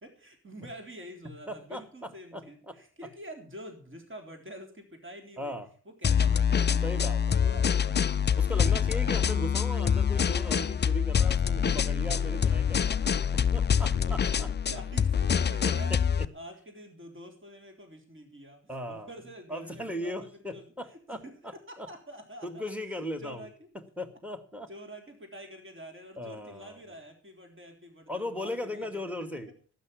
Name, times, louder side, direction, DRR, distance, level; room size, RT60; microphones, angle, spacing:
voice 1, 0.0-5.6 5.9-8.2 8.8-9.5 11.4-11.9 12.9-13.0 13.8-23.7 24.7-29.1, equal, 25° right, 4 dB, 3.7 m, -47 dB
voice 2, 1.5-2.8 3.0-3.1 5.4-5.7 6.8-7.6 8.4-12.9 13.5-14.5 15.6-15.8 18.7-19.1 19.5-21.5 21.8-21.9 22.4-23.5 23.7-24.7 26.2-26.8 28.1-29.5, left 1 dB, 5° right, 9 dB, 2.3 m, -38 dB
sound 1, 6.0-16.3, left 7 dB, 25° left, 0.6 m, -25 dB
12.0 x 9.5 x 7.1 m, 0.43 s
hypercardioid pair, 45°, 45 cm